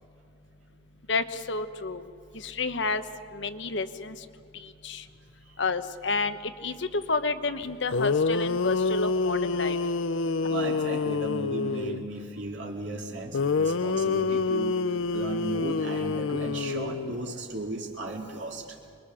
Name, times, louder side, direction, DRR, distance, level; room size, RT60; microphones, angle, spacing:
voice 1, 1.1-2.0 2.4-3.0 3.3-4.2 4.8-5.0 5.6-6.4 6.6-9.8, left 3 dB, 60° left, 10 dB, 1.1 m, -30 dB
sound 1, 7.6-7.7 7.9-12.1 13.3-17.4, left 4 dB, 85° left, 0.6 m, -27 dB
voice 2, 10.5-14.8 15.1-18.6, right 2 dB, 65° right, 0 dB, 2.2 m, -35 dB
26.5 x 22.5 x 7.0 m, 2.4 s
head